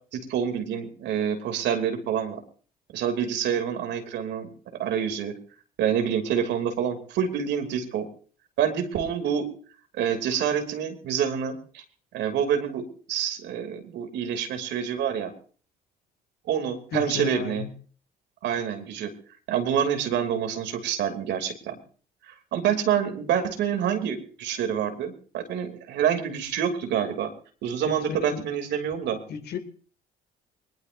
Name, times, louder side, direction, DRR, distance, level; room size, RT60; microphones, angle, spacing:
voice 1, 0.1-2.4 2.9-4.5 4.8-5.3 5.8-8.1 8.6-9.5 10.0-11.8 12.1-15.3 16.5-17.6 18.4-19.1 19.5-21.8 22.3-27.3 27.6-29.2, right 8 dB, 65° right, 5 dB, 2.8 m, -27 dB
voice 2, 16.9-17.7 28.2-28.4 29.3-29.6, left 7 dB, 60° left, 7 dB, 2.4 m, -33 dB
22.5 x 20.0 x 2.6 m, 0.41 s
hypercardioid pair, 55°, 19 cm